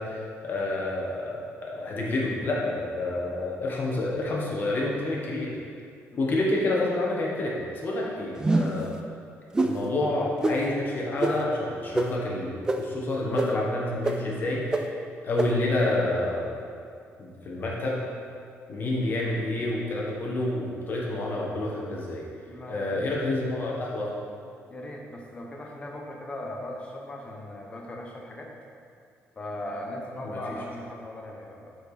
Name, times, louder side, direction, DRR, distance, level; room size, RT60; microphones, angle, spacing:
voice 1, 0.0-5.5 6.2-9.0 9.6-12.5 12.8-14.9 15.2-16.6 17.2-18.0 18.7-22.2 22.7-24.2 30.2-30.4, left 2 dB, 40° left, -3 dB, 1.3 m, -28 dB
sound 1, 8.4-8.8 9.5-9.7 10.4-10.6 11.2-11.3 11.9-12.1 12.7-12.8 13.4-13.5 14.0-14.1 14.7-14.8 15.4-15.5, right 2 dB, 15° right, 0.4 m, -23 dB
voice 2, 22.4-23.3 24.7-28.6 29.4-31.7, left 1 dB, 25° left, 0 dB, 0.9 m, -39 dB
7.8 x 4.5 x 5.0 m, 2.3 s
cardioid pair, 170°, 5 cm